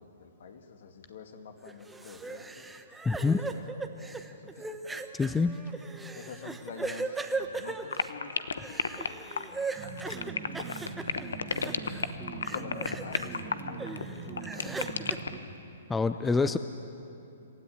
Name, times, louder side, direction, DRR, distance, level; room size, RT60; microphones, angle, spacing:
voice 1, 0.0-2.7 3.1-4.8 6.0-9.7 9.9-11.2 11.6-12.1 12.5-14.8 15.5-15.6 16.2-16.6, left 5 dB, 60° left, 6 dB, 2.1 m, -48 dB
sound 1, 1.6-12.1 12.4-13.3 13.8-15.2, right 3 dB, 5° right, 1.0 m, -38 dB
voice 2, 3.1-3.4 5.1-5.6 15.9-16.6, left 4 dB, 10° left, 11 dB, 0.5 m, -26 dB
sound 2, 7.9-15.4, left 5 dB, 80° left, 1.0 m, -32 dB
sound 3, 9.8-15.4, right 4 dB, 25° right, 2.3 m, -42 dB
27.0 x 13.5 x 8.8 m, 2.8 s
hypercardioid pair, 125°, 0 cm